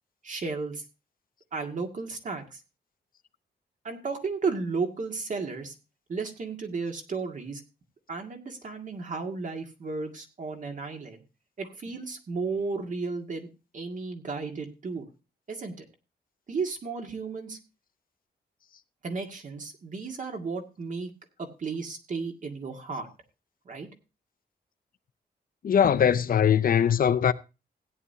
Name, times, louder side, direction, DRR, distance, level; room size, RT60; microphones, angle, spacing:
voice 1, 0.2-0.8 1.5-2.6 3.8-5.7 6.1-7.6 8.1-11.2 11.6-13.5 13.7-15.1 15.5-15.9 16.5-17.6 19.0-21.1 21.4-23.1 23.7-23.9, right 4 dB, 45° right, 2.0 m, -34 dB
voice 2, 25.6-27.3, left 8 dB, 55° left, 0.5 m, -21 dB
16.5 x 9.7 x 2.8 m
wide cardioid pair, 180°, 18 cm